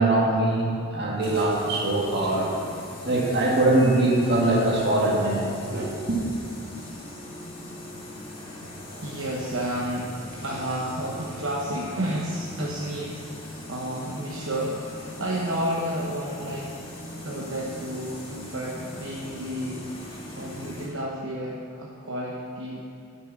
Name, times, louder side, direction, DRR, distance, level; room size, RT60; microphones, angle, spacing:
voice 1, 0.0-2.5 3.0-6.2, right 2 dB, 50° right, -3 dB, 2.1 m, -22 dB
sound 1, 1.2-20.9, left 1 dB, 25° left, 1.9 m, -40 dB
voice 2, 9.0-10.1 10.4-16.7 17.2-19.9 20.4-22.8, right 1 dB, 65° right, -4 dB, 1.1 m, -31 dB
11.0 x 6.9 x 6.1 m, 2.5 s
head